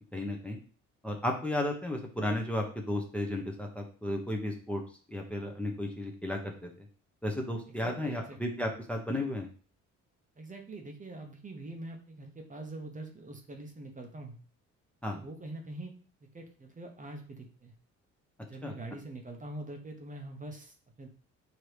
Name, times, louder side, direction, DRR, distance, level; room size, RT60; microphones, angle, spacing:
voice 1, 0.1-0.6 1.0-4.8 5.1-6.7 7.2-9.5 15.0-15.2 18.6-18.7, left 1 dB, 5° left, 1 dB, 0.8 m, -33 dB
voice 2, 7.8-8.4 10.4-14.4 15.0-15.9 16.3-17.7 18.5-21.1, right 2 dB, 25° right, 3 dB, 0.8 m, -44 dB
4.7 x 2.8 x 3.2 m, 0.40 s
cardioid pair, 90°, 30 cm